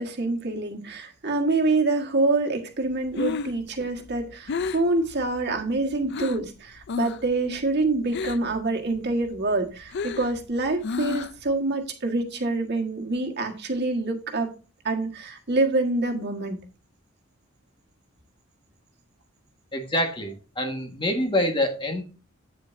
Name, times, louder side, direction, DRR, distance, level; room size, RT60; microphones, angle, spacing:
voice 1, 0.0-14.5 14.8-16.6, right 2 dB, 50° right, 3 dB, 1.6 m, -26 dB
Breathing, 2.9-6.5 6.8-7.3 7.6-8.6 8.9-11.5, left 4 dB, 55° left, 0.4 m, -32 dB
voice 2, 19.7-22.0, left 1 dB, 25° left, 4 dB, 1.6 m, -26 dB
8.8 x 8.3 x 2.6 m, 0.34 s
head